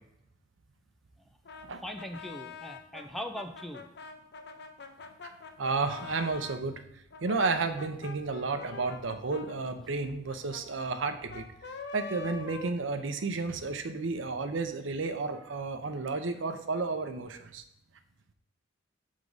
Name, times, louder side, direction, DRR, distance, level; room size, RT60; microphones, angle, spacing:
voice 1, 1.2-3.8, equal, ahead, 6 dB, 0.4 m, -41 dB
Brass instrument, 1.4-6.6 7.1-13.4, left 4 dB, 60° left, 0.7 m, -45 dB
voice 2, 5.6-6.8 7.2-11.4 11.9-17.6, right 3 dB, 75° right, 8 dB, 0.7 m, -32 dB
6.4 x 3.7 x 5.2 m, 0.77 s
head